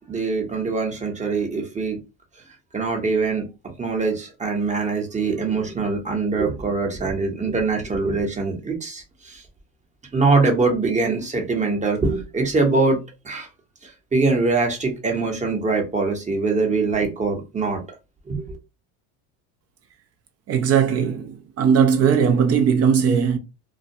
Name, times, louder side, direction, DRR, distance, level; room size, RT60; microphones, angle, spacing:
voice 1, 0.1-2.0 2.7-3.4 3.8-9.4 10.1-13.0 13.2-13.5 13.8-17.8 18.3-18.6, right 3 dB, 15° right, 0.8 m, -23 dB
voice 2, 20.5-23.4, right 7 dB, 35° right, 0.4 m, -18 dB
2.4 x 2.1 x 2.7 m
supercardioid pair, 100°, 44 cm